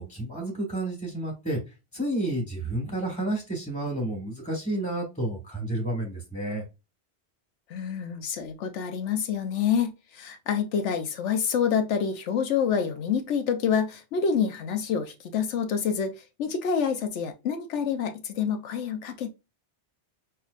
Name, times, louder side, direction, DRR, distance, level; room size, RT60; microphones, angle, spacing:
voice 1, 0.0-1.6 1.9-6.6, right 1 dB, 5° left, 1.4 m, -30 dB
voice 2, 7.7-19.3, left 7 dB, 90° left, 1.0 m, -27 dB
5.7 x 2.7 x 2.4 m
omnidirectional pair, 1.2 m